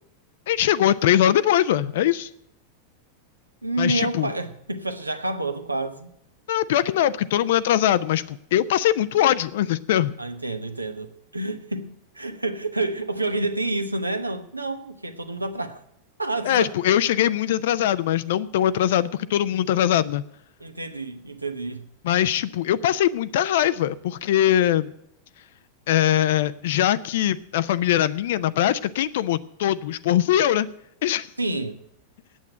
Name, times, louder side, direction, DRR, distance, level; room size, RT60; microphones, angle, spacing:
voice 1, 0.5-2.3 3.8-4.3 6.5-10.2 16.5-20.2 22.0-24.9 25.9-30.7 31.0-31.3, left 11 dB, 55° left, 0.4 m, -21 dB
voice 2, 3.6-6.1 10.2-15.8 16.2-16.7 20.6-21.9 31.4-31.8, right 2 dB, 85° right, 0.9 m, -29 dB
8.8 x 8.2 x 8.9 m
figure-of-eight pair, 90°, 0 cm